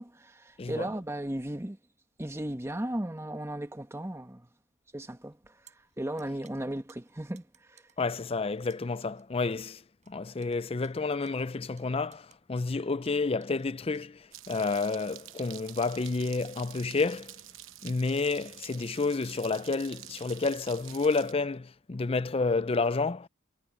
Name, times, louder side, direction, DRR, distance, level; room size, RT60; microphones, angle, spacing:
voice 1, 0.0-1.8 2.2-4.5 4.9-5.4 6.0-7.4 7.7-7.8, right 1 dB, 15° right, 1.0 m, -35 dB
voice 2, 0.6-0.9 8.0-9.8 10.1-17.4 17.8-23.3, left 3 dB, 30° left, 0.5 m, -30 dB
sound 1, 5.3-14.5, right 9 dB, 35° right, 7.2 m, -63 dB
sound 2, 14.3-21.3, right 13 dB, 65° right, 0.9 m, -48 dB
head